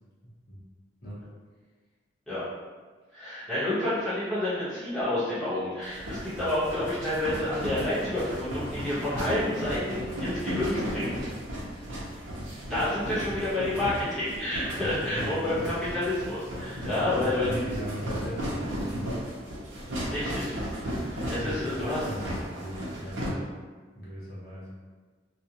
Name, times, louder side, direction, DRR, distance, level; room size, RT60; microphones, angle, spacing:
voice 1, 0.2-0.6 1.0-1.2 14.7-15.7 16.8-19.1 21.4-23.6 23.9-24.7, equal, 50° left, -9 dB, 0.8 m, -38 dB
voice 2, 3.1-11.1 12.7-17.6 20.1-20.5 20.8-22.0, left 1 dB, ahead, -14 dB, 0.9 m, -29 dB
sound 1, 5.8-23.3, equal, 85° right, 0.7 m, -35 dB
2.4 x 2.1 x 2.8 m, 1.4 s
head